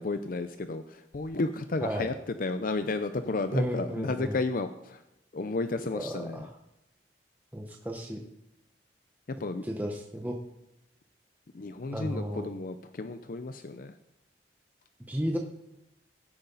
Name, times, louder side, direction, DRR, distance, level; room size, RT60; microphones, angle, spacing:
voice 1, 0.0-5.0 5.3-6.5 9.4-9.6 11.5-13.9, left 3 dB, 50° left, 10 dB, 0.5 m, -32 dB
voice 2, 1.8-2.1 3.5-4.4 5.9-6.5 7.5-8.2 9.6-10.4 11.9-12.4 15.1-15.4, equal, 10° right, 1 dB, 0.9 m, -33 dB
16.0 x 8.3 x 4.0 m, 0.87 s
head